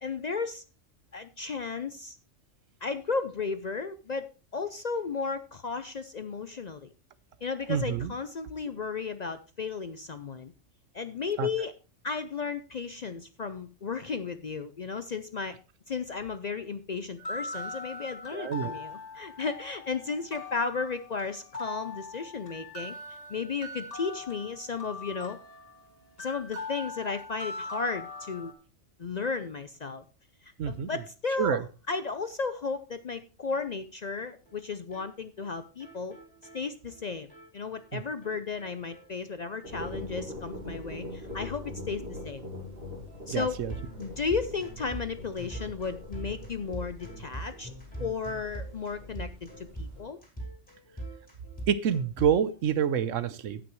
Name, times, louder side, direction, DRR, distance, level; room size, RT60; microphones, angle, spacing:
voice 1, 0.0-0.6 1.1-2.2 2.8-6.9 7.4-10.5 10.9-11.7 12.0-15.6 15.9-23.0 23.3-25.4 26.2-28.5 29.0-30.0 30.4-31.6 31.9-36.1 36.5-37.3 37.5-42.4 43.3-43.6 44.0-47.7 48.0-50.2, left 5 dB, 50° left, 11 dB, 0.5 m, -34 dB
voice 2, 7.7-8.1 11.4-11.5 18.3-18.8 30.6-30.9 31.4-31.6 37.9-38.0 43.3-43.7 51.7-53.6, right 8 dB, 85° right, 14 dB, 1.1 m, -27 dB
sound 1, 17.2-28.5, left 3 dB, 30° left, 2.2 m, -41 dB
sound 2, 34.2-34.3 34.5-34.6 34.9-35.1 35.4-35.5 35.8-37.5 37.8-37.9 38.2-39.5 39.8-40.0 40.2-40.4 40.7-52.7, right 2 dB, 5° left, 4.2 m, -43 dB
sound 3, 39.6-50.0, left 1 dB, 50° right, 2.5 m, -43 dB
17.0 x 6.1 x 3.1 m, 0.32 s
omnidirectional pair, 1.3 m